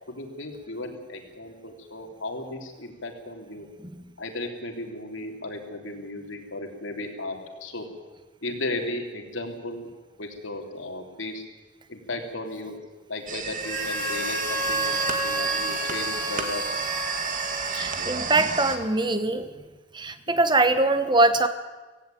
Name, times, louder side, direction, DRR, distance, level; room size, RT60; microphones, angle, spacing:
voice 1, 0.1-3.7 4.2-7.9 8.4-9.9 10.2-11.4 11.9-12.8 13.1-16.6 17.7-17.9 20.3-20.4, left 2 dB, 90° left, 3 dB, 3.3 m, -35 dB
sound 1, 13.3-18.8, right 5 dB, 45° right, 2.2 m, -31 dB
Harmonica, 13.6-18.5, equal, 10° left, 5.2 m, -31 dB
voice 2, 17.7-19.5 19.9-21.5, right 2 dB, 25° right, 10 dB, 1.2 m, -22 dB
17.0 x 16.5 x 9.3 m, 1.3 s
head